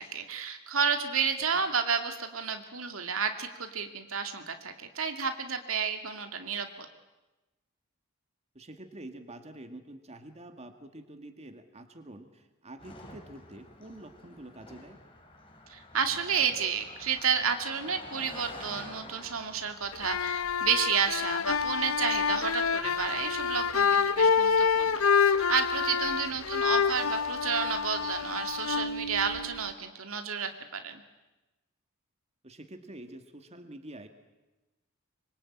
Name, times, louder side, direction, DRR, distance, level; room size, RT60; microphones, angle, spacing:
voice 1, 0.0-6.9 15.7-31.0, right 6 dB, 75° right, 6 dB, 2.4 m, -31 dB
voice 2, 8.5-15.0 26.3-26.4 32.4-34.1, right 1 dB, 30° right, 6 dB, 2.0 m, -47 dB
Car passing by, 12.8-22.4, left 2 dB, 25° left, 4.1 m, -49 dB
sound 1, 19.9-29.7, left 6 dB, 80° left, 0.8 m, -27 dB
25.5 x 23.5 x 8.8 m, 1.1 s
head